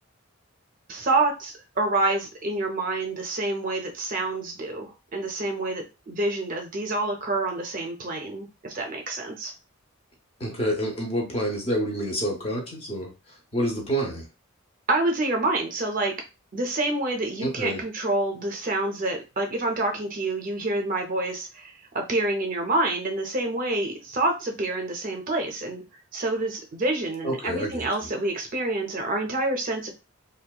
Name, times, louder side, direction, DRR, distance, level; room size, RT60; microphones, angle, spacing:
voice 1, 0.9-9.5 14.9-16.1 16.5-21.7 22.1-25.8 26.1-29.9, right 2 dB, 40° right, 3 dB, 0.4 m, -27 dB
voice 2, 10.4-13.1 13.5-14.2 17.4-17.8 27.2-27.9, equal, 25° left, 0 dB, 0.6 m, -28 dB
2.6 x 2.1 x 2.2 m, 0.28 s
head